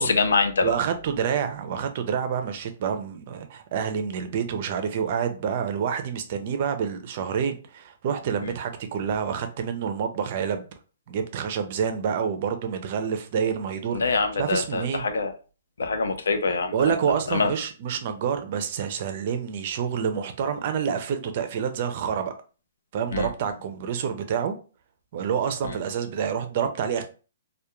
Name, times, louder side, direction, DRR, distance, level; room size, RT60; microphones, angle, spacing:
voice 1, 0.0-0.7 8.4-8.5 13.9-15.3 15.8-16.9 17.3-17.5 23.1-23.3 25.6-25.8, left 4 dB, 90° left, 0.5 m, -25 dB
voice 2, 0.6-10.7 11.1-15.0 16.7-22.3 22.9-24.6 25.1-27.0, right 7 dB, 35° right, 0.4 m, -28 dB
2.2 x 2.1 x 2.9 m
hypercardioid pair, 170°, 0 cm